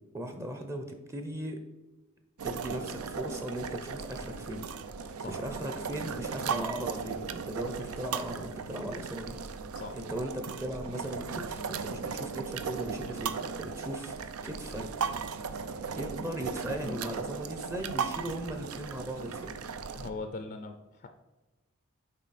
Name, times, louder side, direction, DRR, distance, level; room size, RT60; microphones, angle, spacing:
voice 1, 0.1-1.6 2.4-4.6 5.2-9.4 9.9-14.2 14.4-14.9 16.0-19.6, right 1 dB, 15° right, 5 dB, 0.6 m, -38 dB
sound 1, 2.4-20.1, right 6 dB, 85° right, 0.5 m, -37 dB
voice 2, 20.0-21.1, left 3 dB, 45° left, 6 dB, 0.4 m, -40 dB
7.3 x 4.5 x 4.1 m, 1.1 s
head